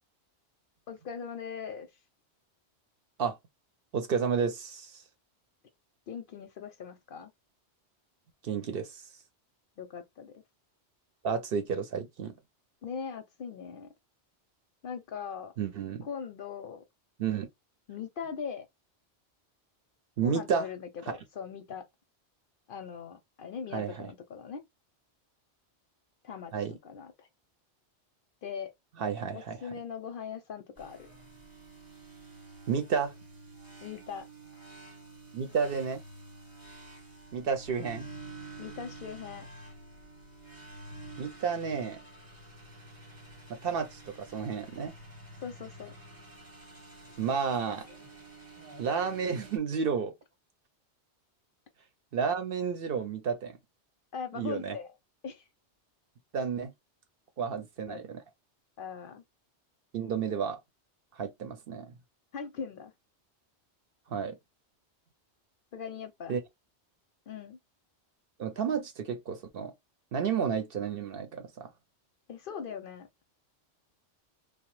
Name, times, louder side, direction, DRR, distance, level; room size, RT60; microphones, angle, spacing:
voice 1, 0.9-1.9 6.1-7.3 9.8-10.4 12.8-13.9 14.8-15.5 16.0-16.8 17.9-18.7 20.2-21.9 22.7-24.6 26.2-26.5 26.8-27.3 28.4-28.7 29.3-31.1 33.8-34.3 34.5-34.6 38.6-39.5 45.4-45.9 54.1-54.9 55.2-55.4 57.9-58.0 58.8-59.2 62.3-62.9 65.7-66.3 67.3-67.6 72.3-73.1, left 6 dB, 60° left, 0.6 m, -40 dB
voice 2, 3.9-5.0 8.4-9.0 11.2-12.3 15.6-16.1 17.2-17.5 20.2-20.7 23.7-24.1 26.5-26.8 29.0-29.6 32.7-33.1 35.3-36.0 37.3-38.1 41.2-42.0 43.6-44.9 47.2-47.9 48.8-50.1 52.1-53.6 54.3-54.8 56.3-56.7 57.4-58.2 59.9-60.6 61.2-61.9 64.1-64.4 66.3-66.4 68.4-69.7 70.1-71.7, right 6 dB, 60° right, 0.7 m, -31 dB
sound 1, 30.8-49.6, right 2 dB, 20° right, 0.8 m, -49 dB
2.9 x 2.1 x 3.1 m
omnidirectional pair, 1.2 m